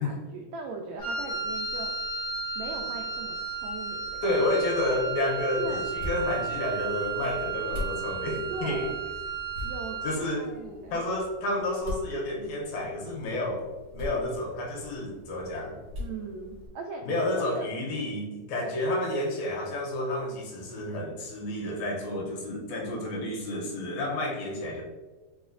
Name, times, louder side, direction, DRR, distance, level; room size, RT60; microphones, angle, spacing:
voice 1, 0.0-1.9 2.3-4.3 5.6-5.9 8.5-9.0 9.6-11.0 16.0-17.0 17.4-17.7 18.6-18.9, right 4 dB, 90° right, 2 dB, 1.5 m, -39 dB
Wind instrument woodwind instrument, 1.0-10.3, right 5 dB, 40° left, 1.4 m, -34 dB
voice 2, 4.2-8.9 10.0-10.5 10.9-15.8 17.0-24.8, left 1 dB, 75° left, -2 dB, 1.9 m, -30 dB
sound 1, 5.5-16.7, left 2 dB, 50° right, 1.2 m, -42 dB
4.6 x 4.0 x 2.5 m, 1.3 s
omnidirectional pair, 3.7 m